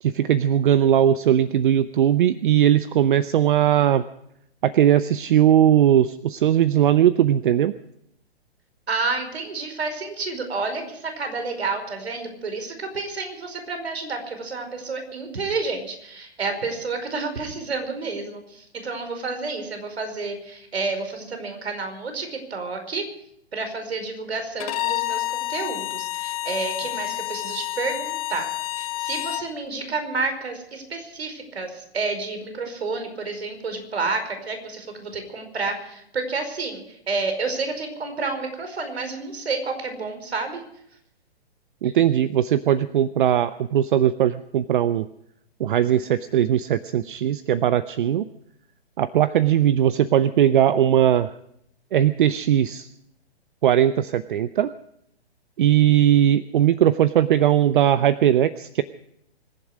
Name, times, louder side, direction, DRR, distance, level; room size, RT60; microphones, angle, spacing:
voice 1, 0.0-4.0 4.6-7.7 41.8-45.1 45.6-48.3 49.0-51.3 51.9-52.9 53.6-54.7 55.6-58.8, right 10 dB, 50° right, 15 dB, 0.7 m, -19 dB
voice 2, 8.9-23.1 23.5-28.5 28.8-40.6, right 3 dB, 75° right, 7 dB, 5.0 m, -30 dB
Bowed string instrument, 24.6-29.5, left 17 dB, 35° left, 1.2 m, -29 dB
25.0 x 11.0 x 5.0 m, 0.73 s
hypercardioid pair, 135°, 32 cm